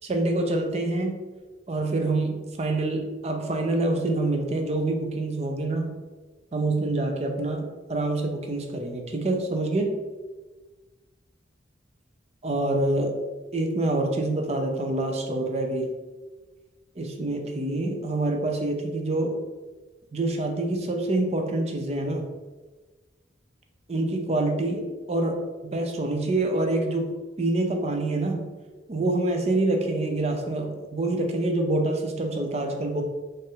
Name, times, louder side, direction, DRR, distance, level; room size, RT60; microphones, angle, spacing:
voice 1, 0.0-1.2 1.7-6.0 6.5-9.9 12.4-13.2 13.5-15.9 17.0-19.4 20.1-22.3 23.9-28.5 28.9-33.0, right 2 dB, 35° right, 3 dB, 0.5 m, -26 dB
4.1 x 2.5 x 3.7 m, 1.3 s
head